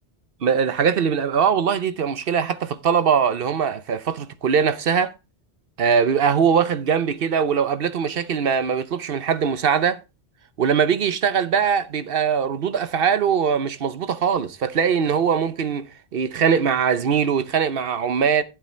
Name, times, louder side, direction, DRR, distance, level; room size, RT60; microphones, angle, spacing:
voice 1, 0.4-5.1 5.8-10.0 10.6-15.9 16.1-18.4, right 7 dB, 60° right, 1.0 m, -21 dB
12.0 x 7.5 x 3.2 m
omnidirectional pair, 1.1 m